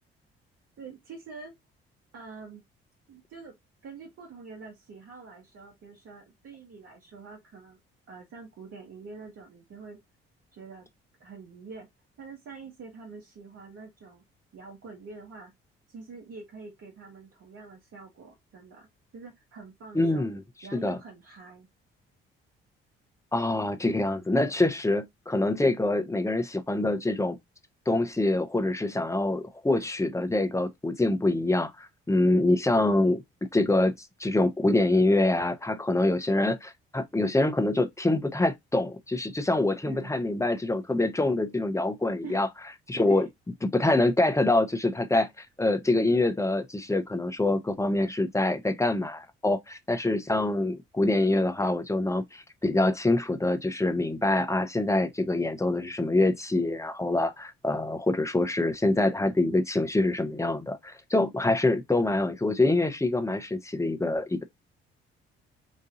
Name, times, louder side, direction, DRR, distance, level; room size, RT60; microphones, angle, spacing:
voice 1, 0.8-1.5 2.1-2.6 3.1-3.5 3.8-7.8 8.1-10.0 10.5-10.9 11.2-11.9 12.2-14.2 14.5-15.5 15.9-18.9 19.1-20.3 20.6-21.7 39.8-40.3 42.2-42.5 42.9-43.3, right 4 dB, 50° right, 1.6 m, -45 dB
voice 2, 19.9-20.4 20.7-21.0 23.3-27.4 27.9-33.2 33.5-33.9 34.2-42.5 42.9-43.3 43.6-64.4, left 2 dB, 10° left, 0.9 m, -25 dB
4.2 x 2.6 x 3.7 m
figure-of-eight pair, 45°, 30 cm